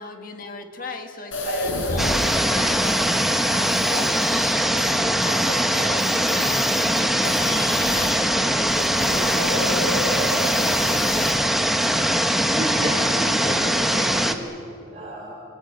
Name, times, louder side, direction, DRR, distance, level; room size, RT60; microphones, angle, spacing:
voice 1, 0.0-3.2 3.4-4.3 4.6-9.4, left 3 dB, 45° left, 5 dB, 1.9 m, -36 dB
sound 1, 1.3-8.1 8.6-11.3, left 2 dB, 80° left, 5.3 m, -30 dB
sound 2, 2.0-14.3, equal, ahead, 1.0 m, -21 dB
voice 2, 11.3-12.3 12.6-15.3, right 1 dB, 30° right, -2 dB, 3.2 m, -33 dB
27.0 x 19.0 x 9.5 m, 2.7 s
head